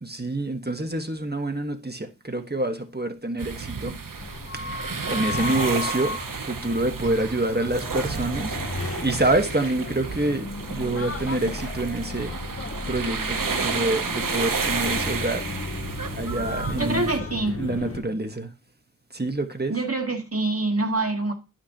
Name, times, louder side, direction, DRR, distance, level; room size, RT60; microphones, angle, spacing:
voice 1, 0.0-4.0 4.7-12.3 12.9-15.5 16.1-17.0 17.6-18.5 19.1-19.7, right 2 dB, 30° right, 1.4 m, -27 dB
sound 1, 3.4-17.2, right 5 dB, 90° right, 0.8 m, -31 dB
sound 2, 4.2-18.0, left 3 dB, 45° left, 0.9 m, -35 dB
voice 2, 16.8-17.6 19.7-21.3, right 2 dB, 50° right, 1.9 m, -25 dB
11.5 x 5.8 x 2.9 m
wide cardioid pair, 40°, 32 cm